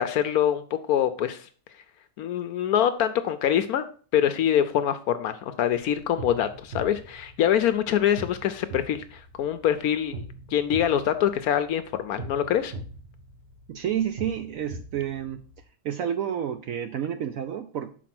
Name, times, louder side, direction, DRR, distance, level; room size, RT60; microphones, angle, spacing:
voice 1, 0.0-1.5 2.2-3.8 4.1-10.2 10.5-12.7, left 10 dB, 70° left, 11 dB, 0.9 m, -24 dB
sound 1, 5.7-15.6, right 2 dB, 40° right, 1.2 m, -42 dB
voice 2, 13.7-15.4 15.8-17.9, right 9 dB, 70° right, 9 dB, 0.8 m, -30 dB
6.0 x 4.6 x 5.9 m, 0.42 s
omnidirectional pair, 1.9 m